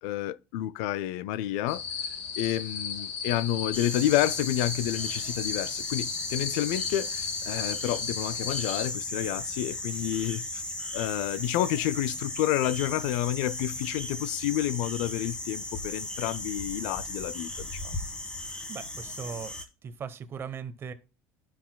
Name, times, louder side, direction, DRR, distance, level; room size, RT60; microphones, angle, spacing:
voice 1, 0.0-1.8 2.4-10.6 10.9-17.9, left 13 dB, 85° left, 0.3 m, -29 dB
sound 1, 1.7-8.9, left 6 dB, 55° left, 2.5 m, -35 dB
sound 2, 3.7-19.6, left 1 dB, 15° left, 1.3 m, -36 dB
voice 2, 18.7-19.5 19.8-20.9, right 6 dB, 30° right, 0.8 m, -38 dB
12.0 x 6.0 x 2.2 m
cardioid pair, 140°, 8 cm